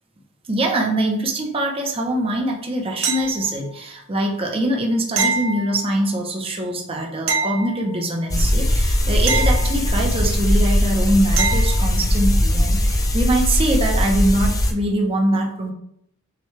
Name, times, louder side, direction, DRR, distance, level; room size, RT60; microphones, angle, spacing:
voice 1, 0.5-15.7, right 1 dB, 25° right, 1 dB, 0.6 m, -23 dB
sound 1, 3.0-3.8 5.2-6.2 7.3-8.3 9.3-10.3 11.4-12.0 14.7-14.8, right 4 dB, 65° right, 0.6 m, -26 dB
sound 2, 8.3-14.7, equal, 15° left, 0.4 m, -19 dB
6.5 x 2.2 x 3.2 m, 0.71 s
head